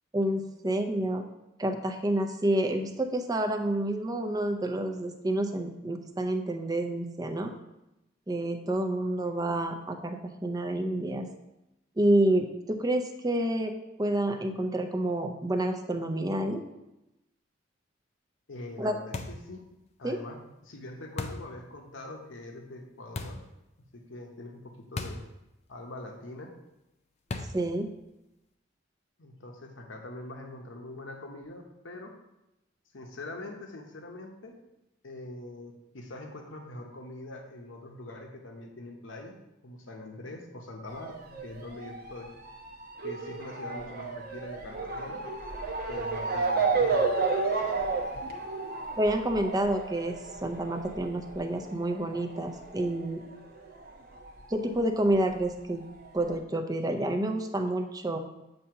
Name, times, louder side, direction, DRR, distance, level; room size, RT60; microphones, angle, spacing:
voice 1, 0.1-1.2 1.6-7.5 8.3-11.3 12.0-13.7 14.0-16.6 18.8-18.9 20.0-20.2 27.5-27.9 49.0-50.1 50.4-53.3 54.5-55.8 56.1-58.2, right 1 dB, 20° right, 5 dB, 0.5 m, -28 dB
voice 2, 18.5-19.6 20.0-20.4 20.6-23.4 23.9-25.2 25.7-26.5 29.2-32.1 32.9-34.5 35.0-39.4 39.6-42.3 43.0-45.2 45.9-47.3, left 2 dB, 80° left, 2 dB, 0.8 m, -43 dB
sound 1, 19.1-19.5 21.2-21.5 23.2-23.5 25.0-25.3 25.6-25.7 27.3-27.7, left 3 dB, 35° left, 0.4 m, -36 dB
Motor vehicle (road) / Siren, 40.9-53.9 54.2-55.3 56.0-56.1 56.3-56.4, right 4 dB, 55° right, 0.8 m, -32 dB
7.6 x 2.8 x 5.6 m, 0.93 s
head